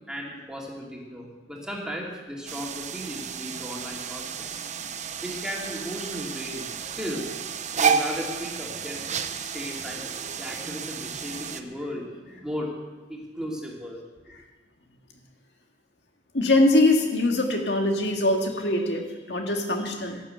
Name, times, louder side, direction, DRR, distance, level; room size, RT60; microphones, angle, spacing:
voice 1, 0.1-4.2 5.2-7.3 7.8-10.1 10.4-12.7 13.1-14.0, equal, 5° right, -2 dB, 2.8 m, -36 dB
sound 1, 2.5-11.6, right 6 dB, 40° right, 0.8 m, -31 dB
voice 2, 16.3-20.2, left 2 dB, 70° left, 2 dB, 1.9 m, -23 dB
12.0 x 11.5 x 7.9 m, 1.2 s
head